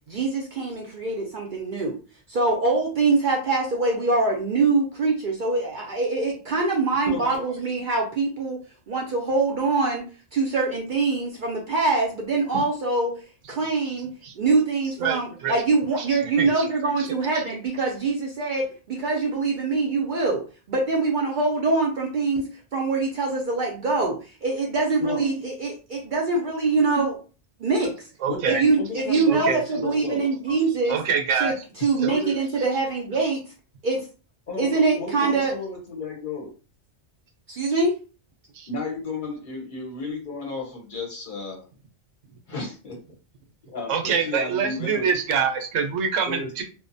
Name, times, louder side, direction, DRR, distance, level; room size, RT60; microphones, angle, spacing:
voice 1, 0.1-2.0 2.3-8.6 8.9-10.1 10.3-13.2 13.5-27.2 27.6-28.1 28.4-31.0 31.4-33.4 33.8-34.1 34.6-35.5 37.5-37.9, right 3 dB, 60° right, -1 dB, 0.5 m, -24 dB
voice 2, 7.1-7.4 12.5-12.6 25.0-25.3 28.3-30.3 32.0-32.4 34.5-36.5 38.7-41.6 42.5-43.0 43.7-45.1 46.2-46.5, left 3 dB, 50° left, 1 dB, 0.7 m, -33 dB
voice 3, 15.0-15.5 16.0-16.1 16.4-16.6 28.2-28.6 29.1-29.6 30.9-31.5 32.0-32.1 38.5-38.7 43.9-46.6, right 6 dB, 80° right, 5 dB, 0.9 m, -25 dB
2.6 x 2.1 x 2.5 m, 0.36 s
omnidirectional pair, 1.2 m